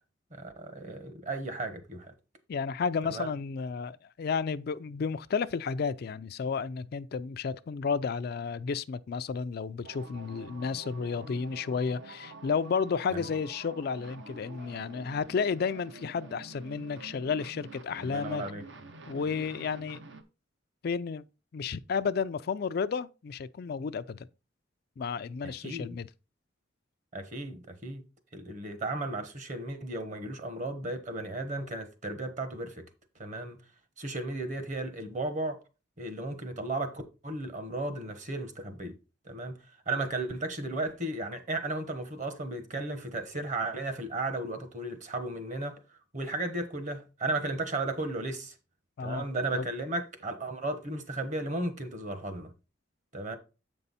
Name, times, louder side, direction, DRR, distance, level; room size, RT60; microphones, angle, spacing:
voice 1, 0.3-2.1 3.0-3.3 13.1-13.3 18.0-18.6 25.4-26.0 27.1-28.0 28.3-32.9 33.2-33.6 34.0-35.6 36.0-39.0 39.2-39.6 39.9-45.8 46.1-48.5 49.0-52.5 53.1-53.4, right 2 dB, 40° right, 1.1 m, -35 dB
voice 2, 2.5-18.4 19.1-20.0 20.8-21.3 21.5-24.3 25.0-26.1 49.0-49.3 49.5-49.7, left 5 dB, 55° left, 0.4 m, -32 dB
sound 1, 9.8-20.2, right 2 dB, 70° right, 0.9 m, -48 dB
7.9 x 5.4 x 4.1 m
head